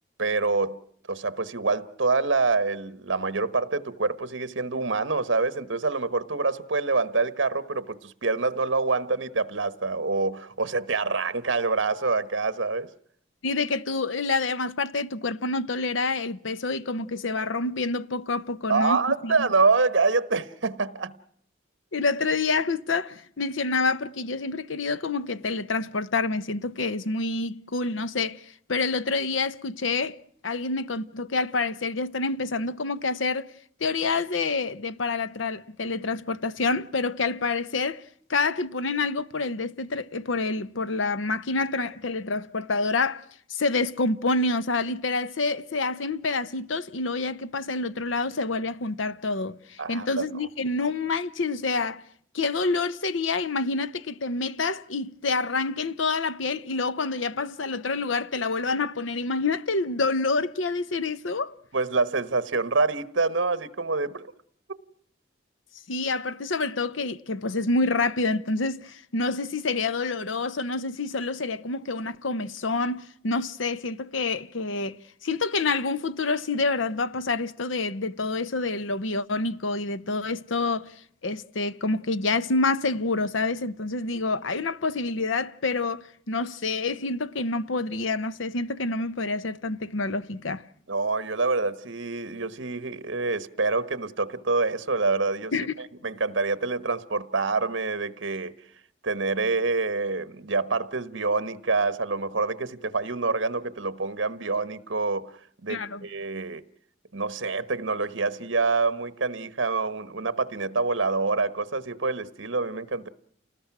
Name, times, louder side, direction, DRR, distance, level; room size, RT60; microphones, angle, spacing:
voice 1, 0.2-0.8 1.1-12.9 18.7-21.1 49.8-50.2 61.7-64.3 90.9-95.5 96.0-98.5 99.0-105.3 105.6-106.6 107.1-113.1, right 3 dB, 75° right, 1.2 m, -26 dB
voice 2, 13.4-19.5 21.9-30.2 30.4-33.5 33.8-38.0 38.3-43.2 43.5-52.0 52.3-61.6 65.9-75.0 75.2-80.9 81.2-90.6 95.5-95.7 105.7-106.1, left 3 dB, 85° left, 0.9 m, -27 dB
29.5 x 19.5 x 6.0 m
head